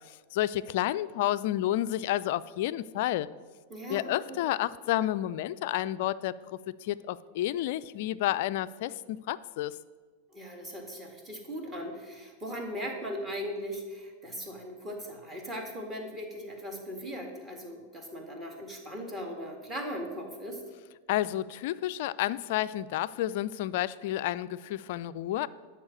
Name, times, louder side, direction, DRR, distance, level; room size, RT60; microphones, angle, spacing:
voice 1, 0.1-3.3 3.9-9.8 21.1-25.5, left 13 dB, 50° left, 16 dB, 0.3 m, -30 dB
voice 2, 3.7-4.5 10.3-20.6, equal, 20° right, 2 dB, 2.0 m, -39 dB
11.5 x 4.8 x 7.7 m, 1.5 s
figure-of-eight pair, 90°, 0 cm